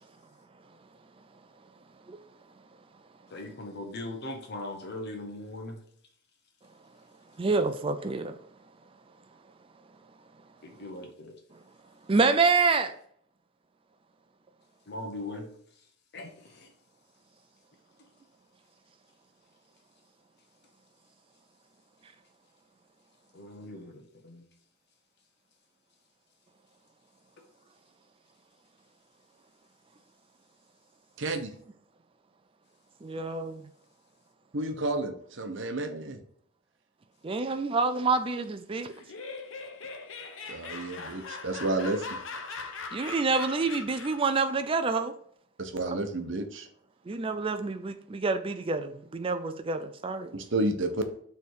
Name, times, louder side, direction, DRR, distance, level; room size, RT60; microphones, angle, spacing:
voice 1, 3.3-5.8 10.6-11.4 14.9-15.5 16.1-16.7 23.3-24.4, left 2 dB, 55° left, 1.1 m, -40 dB
voice 2, 7.4-8.3 12.1-12.9 33.0-33.7 37.2-38.9 42.9-45.1 45.9-46.0 47.1-50.3, right 4 dB, 25° right, 0.4 m, -27 dB
voice 3, 31.2-31.5 34.5-36.2 40.5-42.2 45.6-46.7 50.3-51.0, right 2 dB, 65° right, 0.9 m, -31 dB
Laughter, 38.9-44.4, left 4 dB, 70° left, 0.8 m, -40 dB
6.8 x 3.5 x 4.7 m
head